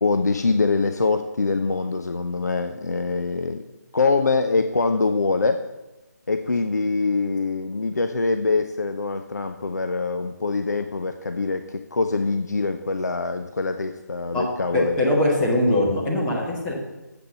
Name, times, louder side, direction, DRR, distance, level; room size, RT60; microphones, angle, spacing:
voice 1, 0.0-3.6 3.9-5.6 6.3-15.0, left 3 dB, 65° left, 7 dB, 0.5 m, -24 dB
voice 2, 14.7-16.7, left 1 dB, 10° left, -4 dB, 1.4 m, -21 dB
7.9 x 5.9 x 6.9 m, 1.0 s
figure-of-eight pair, 155°, 10 cm